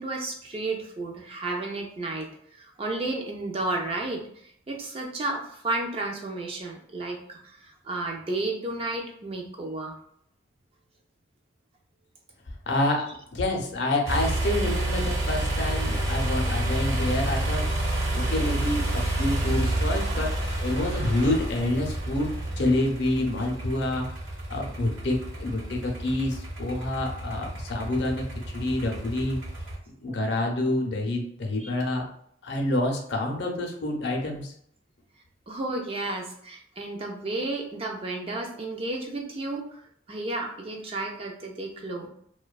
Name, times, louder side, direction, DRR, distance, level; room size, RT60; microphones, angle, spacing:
voice 1, 0.0-10.0 30.1-30.4 31.6-31.7 35.5-39.8 40.1-42.1, right 2 dB, 30° right, 1 dB, 0.3 m, -32 dB
voice 2, 12.7-17.7 18.1-20.3 20.6-24.1 24.5-29.4 30.0-32.1 32.4-34.5, left 1 dB, 60° left, 1 dB, 0.5 m, -28 dB
sound 1, 14.1-29.8, right 1 dB, 80° right, 0.8 m, -29 dB
2.6 x 2.2 x 2.2 m, 0.66 s
head